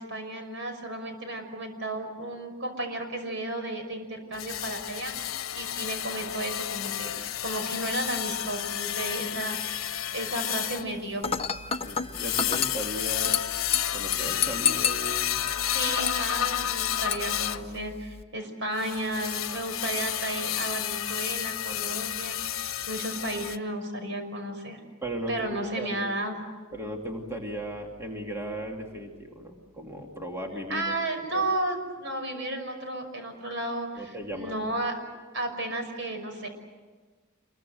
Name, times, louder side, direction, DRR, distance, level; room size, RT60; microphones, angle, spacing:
voice 1, 0.0-11.3 15.7-24.8 25.3-26.4 30.7-35.0 35.3-36.5, right 1 dB, 60° right, 6 dB, 5.8 m, -33 dB
sound 1, 4.3-17.7 18.8-23.6, left 11 dB, 75° left, 1.1 m, -31 dB
Dishes pots and pans / Glass, 11.2-18.2, left 7 dB, 30° left, 0.9 m, -32 dB
voice 2, 11.8-13.5 13.9-15.5 25.0-26.1 26.7-30.8 31.3-31.4 34.0-34.6, right 1 dB, 15° right, 1 dB, 2.7 m, -36 dB
27.5 x 23.0 x 7.8 m, 1.4 s
head